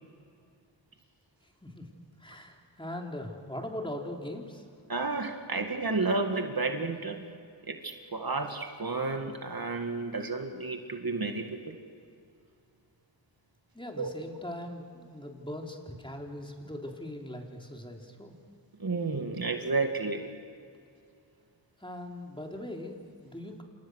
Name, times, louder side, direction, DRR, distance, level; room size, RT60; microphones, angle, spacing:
voice 1, 1.4-1.9 2.2-4.7 13.7-18.4 21.8-23.6, left 1 dB, 10° left, 1 dB, 3.7 m, -40 dB
voice 2, 4.9-7.2 7.7-11.8 14.0-14.1 18.8-20.3, right 3 dB, 50° right, 4 dB, 2.1 m, -31 dB
29.5 x 27.5 x 6.5 m, 2.4 s
wide cardioid pair, 80°, 45 cm